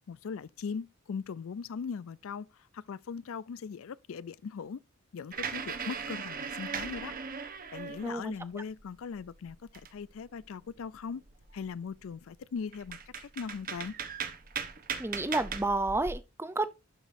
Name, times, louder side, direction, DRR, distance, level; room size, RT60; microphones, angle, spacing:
voice 1, 0.1-2.5 2.7-4.8 5.1-7.1 7.7-9.6 9.9-11.2 11.5-13.9, left 6 dB, 65° left, 0.4 m, -39 dB
sound 1, 5.3-8.3 8.8-10.3 10.7-10.8 11.2-11.7 12.3-12.4 12.7-16.2, right 6 dB, 40° right, 1.0 m, -38 dB
voice 2, 8.0-8.6 15.0-16.7, right 2 dB, 10° right, 0.5 m, -31 dB
12.0 x 5.0 x 2.6 m
head